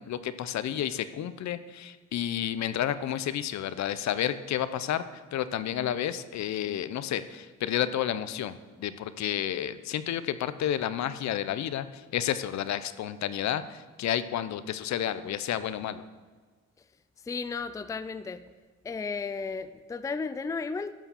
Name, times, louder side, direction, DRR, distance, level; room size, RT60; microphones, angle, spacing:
voice 1, 0.0-16.0, left 10 dB, 65° left, 13 dB, 0.6 m, -31 dB
voice 2, 17.2-18.4 18.8-20.9, left 4 dB, 10° left, 13 dB, 0.4 m, -34 dB
11.5 x 4.7 x 6.9 m, 1.4 s
cardioid pair, 90°, 30 cm